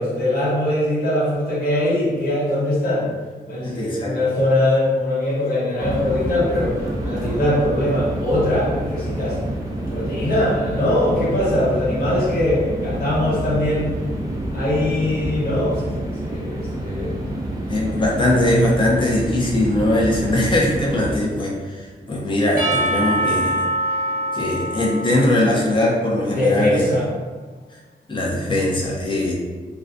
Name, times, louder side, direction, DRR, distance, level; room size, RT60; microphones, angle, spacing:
voice 1, 0.0-3.1 3.5-9.4 9.9-13.9 14.5-17.2 17.9-18.0 26.3-27.0, left 1 dB, 70° left, -8 dB, 1.1 m, -21 dB
voice 2, 3.6-4.2 17.7-23.6 24.3-26.8 28.1-29.3, left 1 dB, 30° left, -3 dB, 0.6 m, -20 dB
sound 1, 5.8-21.2, right 1 dB, 25° right, 0.5 m, -28 dB
Percussion / Church bell, 22.6-26.7, right 1 dB, 60° right, 0.9 m, -25 dB
2.3 x 2.2 x 2.5 m, 1.3 s
wide cardioid pair, 95°, 16 cm